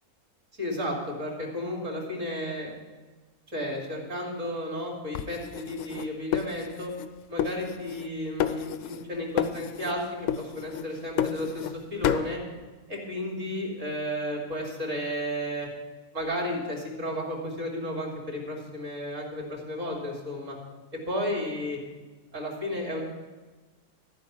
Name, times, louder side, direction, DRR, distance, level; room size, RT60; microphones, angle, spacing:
voice 1, 0.6-2.7 3.5-6.9 7.3-12.4 12.9-15.7 16.1-20.6 20.9-21.8 22.3-23.0, equal, 50° right, -1 dB, 3.3 m, -33 dB
sound 1, 5.1-7.1 7.4-8.1 8.4-9.1 9.4-10.0 10.3-11.8 12.0-12.3, left 10 dB, 65° left, 0.8 m, -31 dB
14.0 x 5.4 x 8.3 m, 1.3 s
omnidirectional pair, 1.7 m